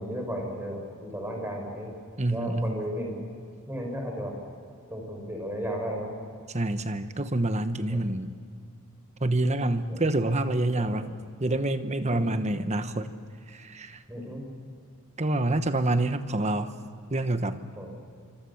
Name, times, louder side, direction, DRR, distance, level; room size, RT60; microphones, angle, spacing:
voice 1, 0.0-1.9 2.3-3.2 3.7-4.4 4.9-6.1 7.9-8.0 9.9-10.0 10.8-11.0 12.0-12.3 14.1-14.5 17.8-17.9, equal, 10° right, 1 dB, 5.9 m, -34 dB
voice 2, 2.2-2.9 6.5-8.3 9.2-11.1 11.4-13.1 13.5-14.0 15.2-16.7 17.1-17.6, right 2 dB, 30° right, 10 dB, 1.2 m, -27 dB
26.0 x 25.5 x 7.2 m, 2.3 s
head